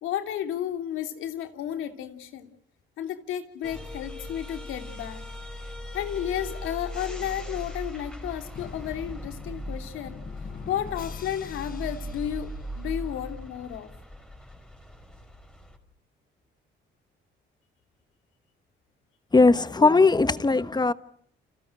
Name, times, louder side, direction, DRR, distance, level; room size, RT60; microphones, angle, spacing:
voice 1, 0.0-2.5 3.0-5.2 5.9-10.2 10.7-13.9, left 10 dB, 85° left, 3.1 m, -32 dB
sound 1, 3.6-15.8, left 1 dB, 5° left, 5.2 m, -39 dB
Drum, 8.6-13.4, left 4 dB, 45° left, 4.7 m, -45 dB
voice 2, 19.3-20.9, left 3 dB, 20° left, 1.3 m, -19 dB
30.0 x 27.5 x 6.2 m
cardioid pair, 90°, 20 cm